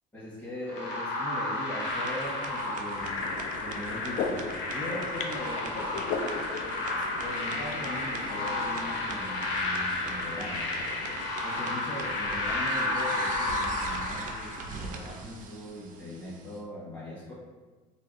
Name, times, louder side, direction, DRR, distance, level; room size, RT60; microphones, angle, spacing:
voice 1, 0.1-6.1 7.2-10.7 11.1-17.3, left 1 dB, 10° left, -13 dB, 1.2 m, -40 dB
sound 1, 0.7-15.1, left 2 dB, 70° left, 0.8 m, -32 dB
sound 2, 1.8-16.6, right 4 dB, 50° right, 0.4 m, -43 dB
sound 3, 3.0-11.3, left 4 dB, 50° left, 0.4 m, -39 dB
3.5 x 2.8 x 2.6 m, 1.3 s
cardioid pair, 110°, 17 cm